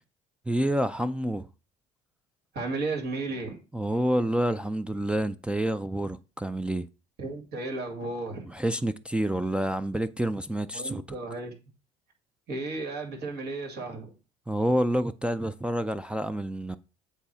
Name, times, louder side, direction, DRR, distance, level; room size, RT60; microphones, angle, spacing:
voice 1, 0.5-1.5 3.7-6.9 8.5-11.0 14.5-16.8, right 1 dB, 5° right, 0.4 m, -28 dB
voice 2, 2.5-3.6 7.2-8.5 10.7-11.5 12.5-14.1, right 3 dB, 65° right, 2.6 m, -34 dB
8.2 x 2.7 x 6.0 m
supercardioid pair, 80°, 18 cm